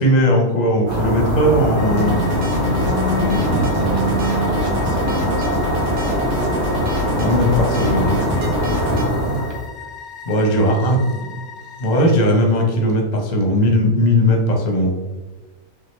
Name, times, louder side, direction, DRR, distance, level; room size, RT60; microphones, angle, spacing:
voice 1, 0.0-2.2 3.1-3.7 7.1-9.5 10.3-11.3 11.8-14.9, equal, 40° left, 1 dB, 0.7 m, -18 dB
sound 1, 0.9-9.6, equal, 35° right, 1.4 m, -21 dB
sound 2, 1.8-12.2, left 7 dB, 80° left, 0.4 m, -38 dB
sound 3, 2.0-9.1, right 1 dB, 75° right, 1.2 m, -32 dB
voice 2, 3.5-5.8, right 1 dB, 50° right, -1 dB, 1.0 m, -34 dB
5.8 x 2.3 x 3.1 m, 1.2 s
omnidirectional pair, 1.5 m